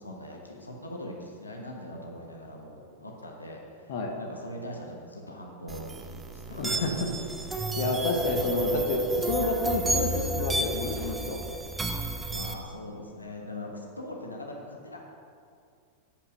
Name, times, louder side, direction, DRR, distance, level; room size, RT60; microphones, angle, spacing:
voice 1, 0.0-3.9 4.2-7.0 7.6-7.7 12.3-15.0, left 1 dB, 80° left, 0 dB, 1.0 m, -41 dB
sound 1, 5.7-12.5, right 2 dB, 10° right, 0.7 m, -31 dB
voice 2, 6.5-6.9 7.8-11.4, left 3 dB, 50° left, 2 dB, 0.9 m, -30 dB
8.5 x 5.4 x 5.8 m, 2.3 s
figure-of-eight pair, 90°, 0 cm